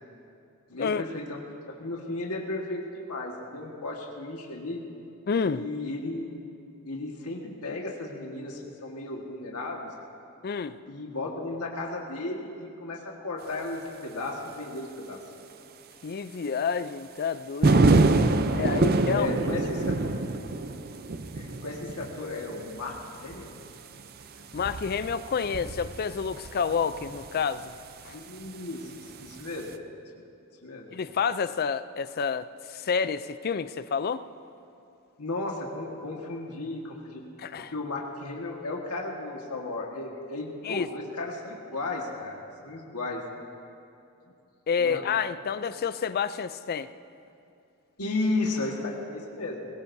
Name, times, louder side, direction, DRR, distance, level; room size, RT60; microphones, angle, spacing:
voice 1, 0.7-1.4 1.8-4.8 5.4-6.3 6.8-9.9 10.9-15.2 18.2-18.8 19.1-20.0 21.3-22.9 23.2-23.5 28.1-29.7 30.6-30.9 35.2-37.2 37.6-43.2 44.8-45.1 48.0-49.7, left 2 dB, 85° left, -1 dB, 1.6 m, -34 dB
voice 2, 5.3-5.7 10.4-10.8 16.0-17.9 18.5-19.3 24.5-27.7 28.0-28.2 30.9-34.2 37.4-37.7 40.6-40.9 44.7-46.9, left 6 dB, 45° left, 14 dB, 0.4 m, -29 dB
sound 1, 17.6-27.8 29.2-29.4, right 2 dB, 45° right, 0.5 m, -26 dB
21.5 x 18.5 x 2.7 m, 2.7 s
head